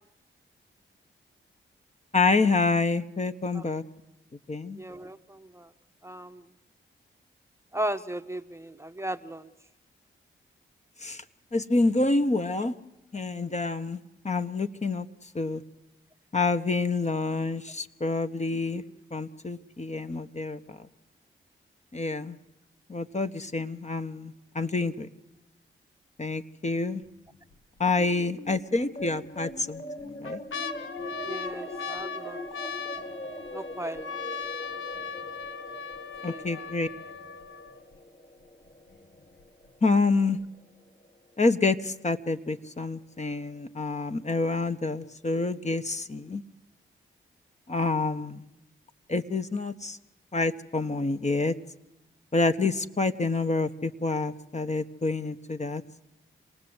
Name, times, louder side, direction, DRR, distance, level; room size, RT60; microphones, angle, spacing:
voice 1, 2.1-3.8 4.5-4.8 11.0-11.2 11.5-12.7 13.1-14.0 14.2-15.1 15.3-15.6 16.3-18.8 19.1-20.8 21.9-22.4 22.9-25.1 26.2-27.0 27.8-30.4 36.2-36.9 39.8-40.4 41.4-46.4 47.7-48.4 49.1-50.0 50.3-51.6 52.3-55.8, left 3 dB, 35° left, 8 dB, 1.1 m, -27 dB
voice 2, 4.8-5.7 6.0-6.5 7.7-9.5 31.2-32.5 33.5-34.3 36.2-36.7, right 1 dB, 15° right, 9 dB, 0.9 m, -36 dB
sound 1, 27.0-27.5 28.0-28.1 29.0-29.5 30.0-38.0 38.7-38.8 38.9-39.4 39.9-40.0, left 5 dB, 65° left, 1.2 m, -38 dB
sound 2, 28.4-40.6, left 1 dB, 50° left, 4.7 m, -42 dB
27.0 x 18.5 x 8.0 m, 0.96 s
cardioid pair, 50°, 21 cm